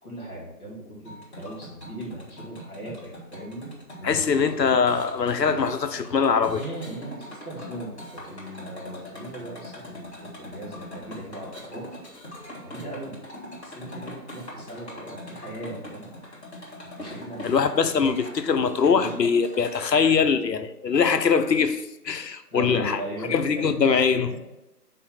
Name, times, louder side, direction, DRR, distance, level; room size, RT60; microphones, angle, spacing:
voice 1, 0.0-3.7 4.0-4.3 6.5-7.9 8.2-11.9 12.6-13.2 13.6-16.1 16.9-17.6 18.0-18.2 18.9-19.2 22.5-24.4, right 1 dB, 5° left, 1.4 m, -38 dB
sound 1, 1.0-19.9, equal, 40° left, 1.7 m, -42 dB
voice 2, 4.0-6.6 17.4-23.0 23.3-24.3, left 6 dB, 80° left, 0.8 m, -22 dB
5.6 x 4.1 x 5.7 m
figure-of-eight pair, 170°, 49 cm